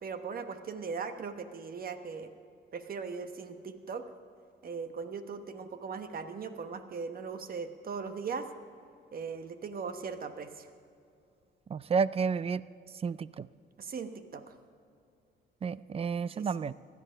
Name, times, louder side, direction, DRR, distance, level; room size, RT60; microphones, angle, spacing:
voice 1, 0.0-2.3 2.7-4.0 4.6-8.5 9.1-10.7 13.8-14.5 16.3-16.5, right 5 dB, 50° right, 8 dB, 1.1 m, -39 dB
voice 2, 11.7-12.6 13.0-13.5 15.6-16.7, right 5 dB, 30° right, 18 dB, 0.4 m, -31 dB
16.0 x 11.0 x 5.6 m, 2.4 s
cardioid pair, 90°, 20 cm